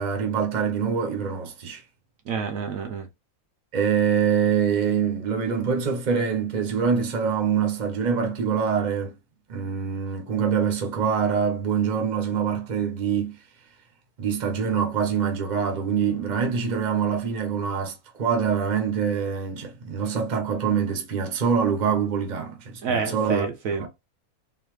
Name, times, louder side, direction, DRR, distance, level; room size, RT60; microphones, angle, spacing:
voice 1, 0.0-1.8 3.7-9.1 9.5-13.3 14.2-23.5 23.8-23.9, right 7 dB, 35° right, 0.9 m, -25 dB
voice 2, 2.3-3.1 22.8-23.9, right 6 dB, 70° right, 1.1 m, -28 dB
3.9 x 2.7 x 3.1 m
omnidirectional pair, 1.5 m